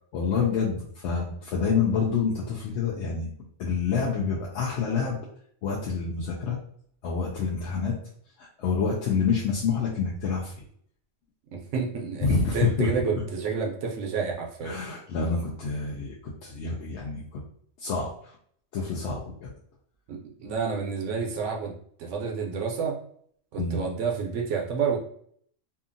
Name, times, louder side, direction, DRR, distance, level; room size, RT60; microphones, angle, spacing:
voice 1, 0.1-3.3 3.6-5.2 5.6-6.6 7.0-8.0 8.4-10.5 12.2-13.1 14.6-17.4 17.8-18.3 18.7-19.5 23.6-23.8, left 5 dB, 70° left, -3 dB, 0.8 m, -27 dB
voice 2, 11.5-14.8 20.1-21.7 22.0-23.0 23.5-25.0, right 5 dB, 70° right, 0 dB, 0.9 m, -29 dB
2.7 x 2.4 x 2.5 m, 0.63 s
omnidirectional pair, 1.3 m